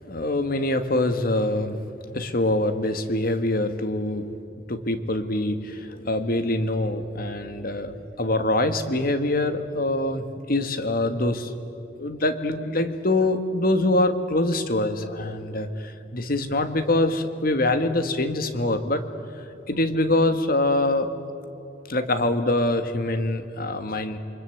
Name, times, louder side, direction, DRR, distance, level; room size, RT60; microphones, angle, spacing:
voice 1, 0.1-1.8 2.1-4.2 4.7-11.5 12.0-19.0 19.6-21.1 21.9-24.2, left 1 dB, 50° left, 9 dB, 1.7 m, -24 dB
27.5 x 24.0 x 8.0 m, 2.9 s
head